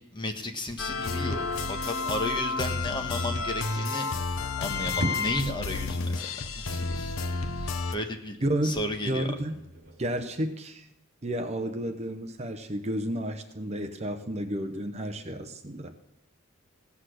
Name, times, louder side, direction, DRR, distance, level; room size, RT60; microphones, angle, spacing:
voice 1, 0.0-4.1 4.6-7.1 7.6-8.4 8.6-9.2, left 1 dB, 20° left, 4 dB, 1.4 m, -34 dB
sound 1, 0.8-8.0, left 3 dB, 75° left, 0.8 m, -31 dB
sound 2, 4.2-10.2, right 1 dB, 60° right, 2.8 m, -41 dB
voice 2, 8.4-9.6 10.0-10.9 11.2-15.9, right 1 dB, 30° right, 7 dB, 0.9 m, -31 dB
16.5 x 8.3 x 6.5 m, 0.82 s
head